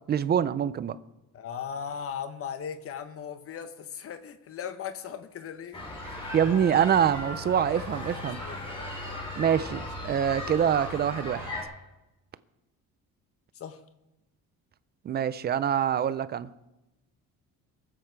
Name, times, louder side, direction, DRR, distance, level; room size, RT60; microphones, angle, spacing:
voice 1, 0.1-1.0 6.3-8.4 9.4-11.5 15.0-16.5, right 9 dB, 30° right, 0.4 m, -25 dB
voice 2, 1.3-5.8 7.5-7.8 8.2-8.6 9.6-9.8 13.5-13.8, left 7 dB, 40° left, 1.0 m, -38 dB
sound 1, 5.7-11.6, left 1 dB, 15° left, 3.1 m, -37 dB
23.0 x 7.8 x 4.6 m
cardioid pair, 165°, 35 cm